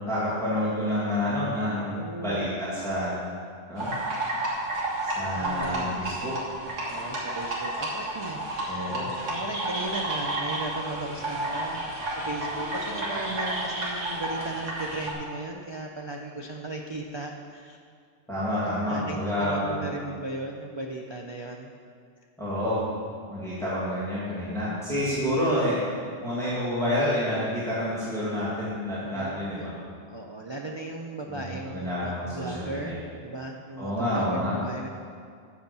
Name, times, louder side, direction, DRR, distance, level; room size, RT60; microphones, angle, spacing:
voice 1, 0.0-3.1 3.7-3.9 5.0-6.6 8.7-9.1 18.3-19.9 22.4-22.8 23.3-25.8 26.2-29.7 31.3-32.9 33.8-34.5, left 1 dB, ahead, -11 dB, 2.2 m, -29 dB
voice 2, 1.8-2.5 5.3-6.1 6.9-11.8 12.1-17.8 18.9-21.7 25.0-25.3 29.0-29.7 30.1-34.9, right 2 dB, 40° right, 1 dB, 0.4 m, -37 dB
sound 1, 3.8-15.1, right 1 dB, 90° right, 2.1 m, -31 dB
8.0 x 6.4 x 6.9 m, 2.2 s
omnidirectional pair, 1.2 m